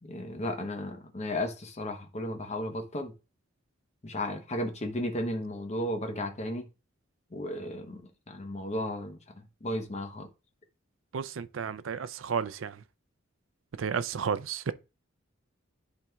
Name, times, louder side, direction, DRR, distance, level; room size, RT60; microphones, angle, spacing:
voice 1, 0.0-3.1 4.0-6.7 7.3-9.2 9.6-10.3, left 1 dB, 35° left, 0.9 m, -34 dB
voice 2, 11.1-12.8 13.8-14.7, right 6 dB, 75° right, 0.5 m, -32 dB
10.5 x 4.1 x 2.3 m
head